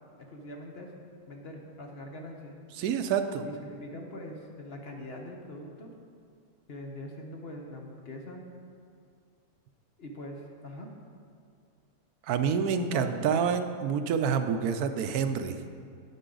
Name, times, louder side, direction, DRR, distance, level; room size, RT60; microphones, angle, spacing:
voice 1, 0.3-0.9 1.3-2.6 3.5-5.9 6.7-8.4 10.0-10.9 12.7-13.2, left 1 dB, 45° left, 1 dB, 1.1 m, -42 dB
voice 2, 2.8-3.5 12.3-15.6, right 7 dB, 80° right, 9 dB, 1.1 m, -27 dB
11.0 x 9.0 x 3.8 m, 2.3 s
omnidirectional pair, 1.6 m